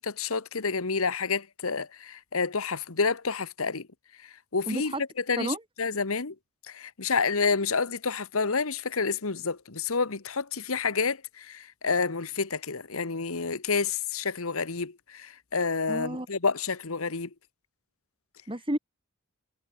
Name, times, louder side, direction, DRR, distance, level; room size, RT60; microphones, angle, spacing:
voice 1, 0.2-3.9 4.5-4.9 5.3-6.3 6.7-17.3, left 4 dB, 70° left, 1.3 m, -29 dB
voice 2, 4.7-5.0 5.4-5.6 15.9-16.3 18.5-18.8, right 1 dB, 25° right, 2.1 m, -31 dB
head